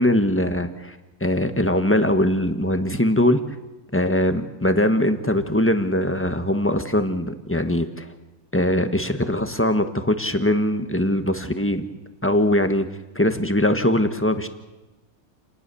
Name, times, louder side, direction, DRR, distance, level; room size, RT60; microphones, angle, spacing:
voice 1, 0.0-3.4 3.9-8.1 8.5-11.9 12.2-12.9 13.1-14.5, left 1 dB, 10° left, 7 dB, 1.1 m, -21 dB
29.0 x 19.5 x 7.1 m, 1.1 s
omnidirectional pair, 2.3 m